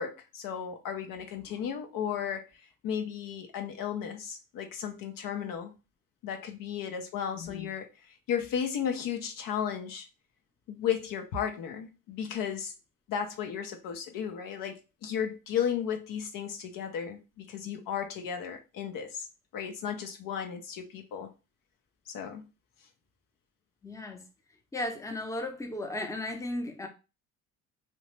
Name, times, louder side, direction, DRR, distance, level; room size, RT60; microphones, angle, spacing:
voice 1, 0.0-2.4 2.8-5.7 6.2-10.1 10.7-12.7 13.1-19.3 19.5-21.3 22.1-22.5, left 8 dB, 65° left, 0.7 m, -34 dB
voice 2, 7.3-7.7 23.8-24.2 24.7-26.9, left 1 dB, 10° left, 0.7 m, -35 dB
2.7 x 2.1 x 3.1 m
supercardioid pair, 65°, 36 cm